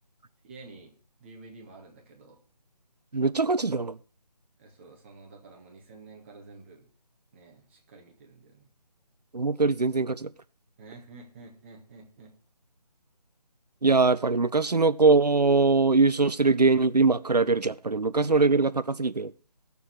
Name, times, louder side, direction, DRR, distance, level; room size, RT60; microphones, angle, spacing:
voice 1, 0.4-0.9 1.2-2.4 4.6-6.9 7.3-8.7 10.8-12.3, right 3 dB, 20° right, 1.7 m, -50 dB
voice 2, 3.1-4.0 9.3-10.3 13.8-19.3, right 3 dB, 85° right, 0.5 m, -22 dB
17.5 x 6.9 x 4.6 m
figure-of-eight pair, 155°, 20 cm